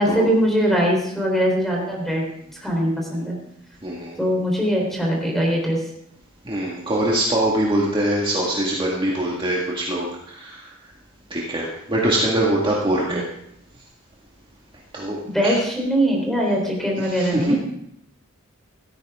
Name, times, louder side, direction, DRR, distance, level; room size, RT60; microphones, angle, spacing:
voice 1, 0.0-2.2 2.6-3.4 4.2-5.8 13.0-13.2 15.3-17.6, equal, ahead, -1 dB, 3.7 m, -21 dB
voice 2, 3.8-4.2 6.5-10.6 11.3-13.2 14.9-15.6 17.0-17.5, right 1 dB, 25° right, -4 dB, 1.9 m, -23 dB
16.0 x 13.5 x 3.7 m, 0.76 s
head